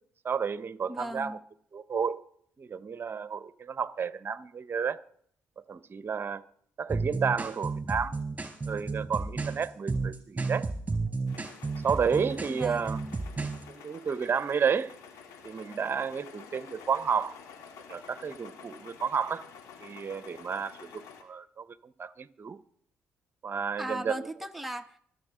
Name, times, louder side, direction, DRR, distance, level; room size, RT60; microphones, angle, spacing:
voice 1, 0.2-1.4 1.7-2.2 2.6-5.0 5.7-6.4 6.8-8.2 8.7-10.7 11.8-13.0 13.7-14.9 15.4-17.4 17.9-19.4 19.8-22.6 23.4-24.3, right 6 dB, 45° right, 0.8 m, -31 dB
voice 2, 0.9-1.4 12.5-13.2 23.8-25.0, equal, ahead, 1.0 m, -38 dB
sound 1, 6.9-13.6, right 3 dB, 25° right, 3.5 m, -32 dB
sound 2, 11.3-21.2, left 6 dB, 80° left, 1.7 m, -50 dB
25.0 x 8.4 x 3.8 m
supercardioid pair, 60°, 5 cm